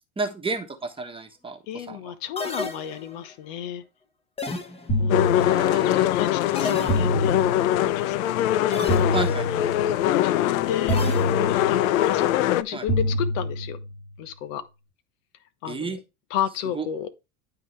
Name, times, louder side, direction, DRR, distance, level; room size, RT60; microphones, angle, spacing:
voice 1, 0.2-2.1 5.4-6.1 9.1-9.5 12.7-12.9 15.7-16.0 16.7-16.9, right 4 dB, 15° right, 1.2 m, -32 dB
voice 2, 1.7-3.8 5.0-5.7 5.9-7.4 7.7-9.1 9.5-11.0 11.4-13.8 14.2-14.6 15.6-15.9 16.3-17.1, left 10 dB, 70° left, 1.2 m, -32 dB
sound 1, 2.4-3.3 4.4-5.1 6.6-7.4 8.7-9.3 10.9-11.8, left 3 dB, 15° left, 1.2 m, -33 dB
sound 2, 4.9-6.1 6.9-8.1 8.9-10.1 10.9-12.1 12.9-14.1, equal, 45° left, 3.9 m, -27 dB
sound 3, 5.1-12.6, left 13 dB, 85° left, 0.6 m, -22 dB
12.0 x 4.0 x 3.2 m
supercardioid pair, 110°, 41 cm